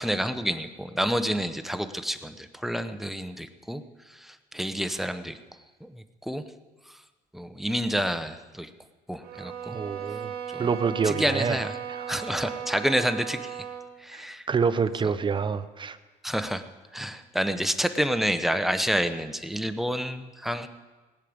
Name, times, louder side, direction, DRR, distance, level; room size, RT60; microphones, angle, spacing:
voice 1, 0.0-5.4 5.8-6.4 6.9-7.0 7.3-8.7 9.1-9.8 10.5-10.7 11.0-11.8 12.1-13.6 14.0-14.5 16.2-16.6 16.9-20.7, equal, ahead, 9 dB, 0.8 m, -29 dB
sound 1, 9.2-13.9, right 8 dB, 70° right, 2.0 m, -36 dB
voice 2, 9.7-10.3 10.6-11.6 11.9-12.2 14.1-16.0, right 5 dB, 30° right, 12 dB, 0.8 m, -27 dB
18.5 x 6.6 x 8.7 m, 1.3 s
cardioid pair, 110°, 17 cm